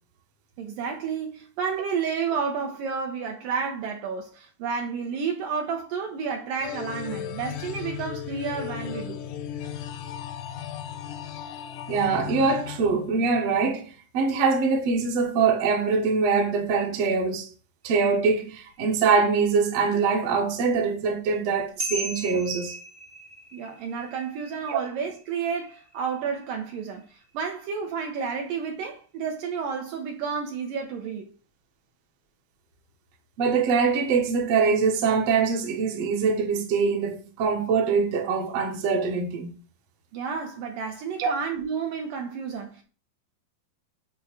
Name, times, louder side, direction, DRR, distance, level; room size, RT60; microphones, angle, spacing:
voice 1, 0.6-9.2 23.5-31.3 40.1-42.8, right 6 dB, 75° right, 2.3 m, -31 dB
sound 1, 6.6-13.6, left 10 dB, 80° left, 2.0 m, -36 dB
voice 2, 11.9-17.5 17.8-22.8 24.7-24.8 33.4-39.5 41.2-41.4, right 5 dB, 60° right, 1.8 m, -23 dB
sound 2, 21.8-27.6, right 2 dB, 30° right, 0.8 m, -39 dB
8.3 x 3.1 x 5.9 m
omnidirectional pair, 4.4 m